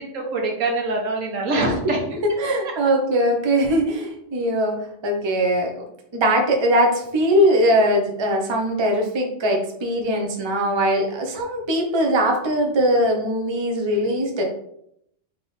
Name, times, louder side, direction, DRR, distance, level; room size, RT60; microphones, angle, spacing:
voice 1, 0.0-2.2, right 2 dB, 80° right, 0 dB, 1.3 m, -24 dB
voice 2, 2.4-4.8 5.0-5.8 6.1-14.4, equal, 30° right, 1 dB, 0.6 m, -21 dB
3.5 x 3.2 x 3.9 m, 0.74 s
omnidirectional pair, 1.3 m